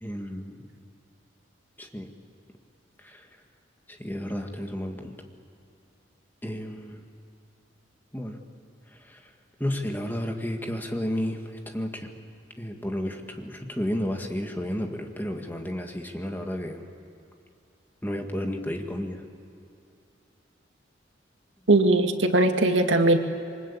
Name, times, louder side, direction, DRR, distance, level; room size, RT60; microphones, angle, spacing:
voice 1, 0.0-0.7 1.8-2.1 3.0-3.3 3.9-5.2 6.4-7.0 8.1-8.4 8.9-9.3 9.6-12.1 12.6-16.8 18.0-19.2, equal, 10° left, 3 dB, 1.9 m, -32 dB
voice 2, 21.7-23.2, right 2 dB, 90° right, 5 dB, 2.0 m, -20 dB
27.5 x 24.0 x 8.5 m, 2.7 s
head